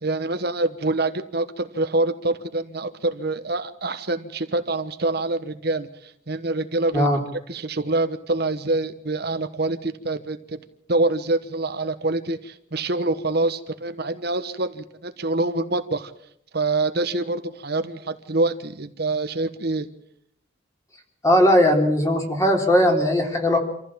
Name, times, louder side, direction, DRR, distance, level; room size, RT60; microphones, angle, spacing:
voice 1, 0.0-7.1 7.5-10.6 10.9-16.1 16.5-19.9, right 2 dB, 55° right, 9 dB, 1.2 m, -25 dB
voice 2, 21.2-23.6, left 1 dB, 15° left, 2 dB, 3.6 m, -18 dB
26.5 x 15.0 x 7.5 m, 0.73 s
head